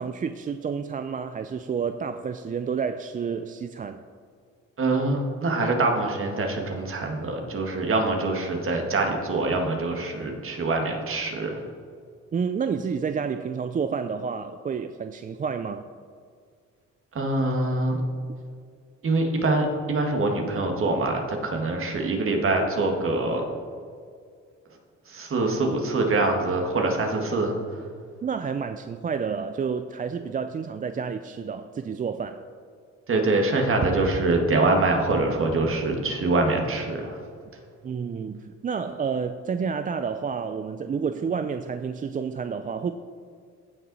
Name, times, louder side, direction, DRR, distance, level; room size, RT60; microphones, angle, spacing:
voice 1, 0.0-4.0 12.3-15.8 28.2-32.4 37.8-42.9, right 6 dB, 30° right, 9 dB, 0.4 m, -30 dB
voice 2, 4.8-11.6 17.1-18.0 19.0-23.4 25.1-27.6 33.1-37.2, right 2 dB, 45° right, 2 dB, 1.8 m, -24 dB
16.0 x 5.6 x 4.1 m, 2.1 s
cardioid pair, 90°, 30 cm